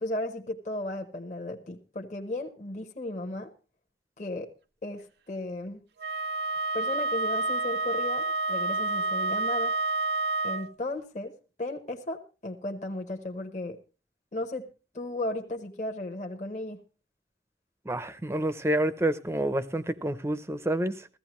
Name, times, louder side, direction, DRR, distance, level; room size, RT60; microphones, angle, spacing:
voice 1, 0.0-3.5 4.2-4.5 4.8-5.8 6.7-9.7 10.4-11.3 11.6-13.8 14.3-14.7 14.9-16.8, left 1 dB, 40° left, 1.0 m, -35 dB
Wind instrument woodwind instrument, 6.0-10.7, right 2 dB, 60° right, 0.6 m, -29 dB
voice 2, 17.9-21.1, right 1 dB, 15° right, 0.6 m, -28 dB
15.5 x 15.0 x 3.0 m
head